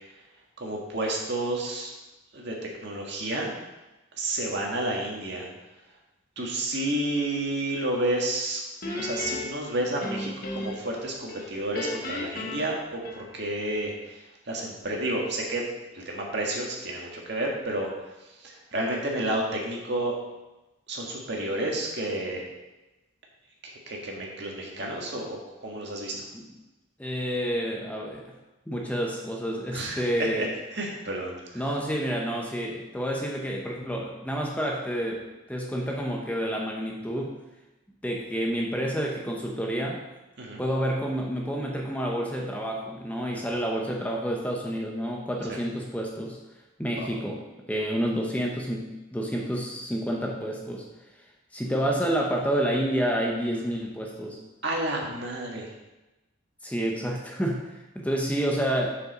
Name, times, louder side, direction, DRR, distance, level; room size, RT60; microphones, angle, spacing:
voice 1, 0.6-1.9 2.3-2.6 2.8-3.5 4.2-5.5 6.4-8.6 8.9-15.6 15.9-18.1 18.4-20.2 20.9-22.4 23.6-26.3 29.7-30.5 30.7-31.6 40.4-40.6 45.5-45.6 47.0-47.1 54.6-55.7, right 1 dB, 55° right, -1 dB, 1.9 m, -30 dB
Guitar, 8.8-11.0 11.3-13.6, left 2 dB, 45° left, 1.3 m, -35 dB
voice 2, 27.0-28.2 28.7-30.5 31.5-37.3 38.0-40.0 40.6-46.4 46.8-47.4 47.7-50.8 51.5-54.4 56.6-59.0, equal, 5° left, -1 dB, 0.8 m, -29 dB
7.4 x 6.7 x 5.3 m, 1.0 s
head